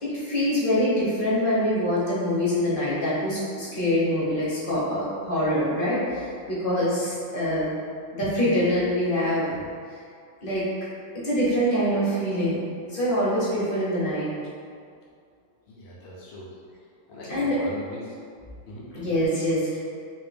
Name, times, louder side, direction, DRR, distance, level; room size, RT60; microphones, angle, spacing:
voice 1, 0.0-7.7 8.1-9.5 10.4-10.6 11.2-12.6 12.9-14.3 17.3-17.6 18.9-19.9, equal, 40° left, -9 dB, 0.8 m, -24 dB
voice 2, 15.7-16.5 17.1-18.2 18.7-18.9, left 1 dB, 80° left, -5 dB, 1.4 m, -39 dB
3.4 x 2.8 x 3.3 m, 2.2 s
omnidirectional pair, 2.1 m